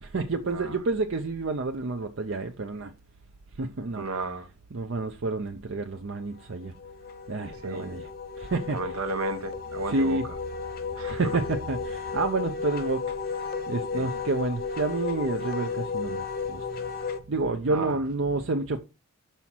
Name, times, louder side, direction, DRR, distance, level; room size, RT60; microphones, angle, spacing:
voice 1, 0.0-2.9 3.6-4.0 4.7-6.7 7.3-8.1 8.4-9.0 9.8-10.3 11.0-16.8 17.3-18.8, right 3 dB, 60° right, 0.6 m, -29 dB
voice 2, 4.0-4.5 7.6-7.9 8.7-10.2 11.0-11.2 13.9-14.1 17.7-18.0, right 3 dB, 85° right, 1.1 m, -33 dB
Wind instrument woodwind instrument, 6.2-17.2, left 5 dB, 40° left, 0.8 m, -34 dB
6.0 x 5.7 x 4.3 m
head